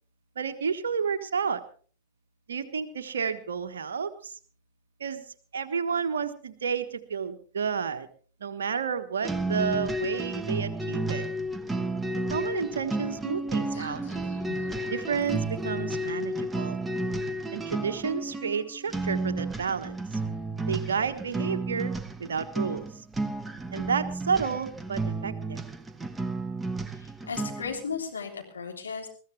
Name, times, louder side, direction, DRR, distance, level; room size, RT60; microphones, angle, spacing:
voice 1, 0.3-1.6 2.5-4.3 5.0-5.2 5.5-8.1 8.4-11.2 12.3-14.0 14.9-16.8 17.5-20.2 20.7-21.9 22.2-22.9 23.7-25.6, right 6 dB, 65° right, 8 dB, 1.4 m, -31 dB
sound 1, 9.2-27.8, right 2 dB, 10° right, 1.1 m, -32 dB
sound 2, 13.7-16.5, left 8 dB, 55° left, 4.0 m, -50 dB
voice 2, 26.9-29.1, left 5 dB, 75° left, 1 dB, 3.3 m, -35 dB
21.5 x 14.5 x 3.4 m, 0.42 s
figure-of-eight pair, 90°, 0 cm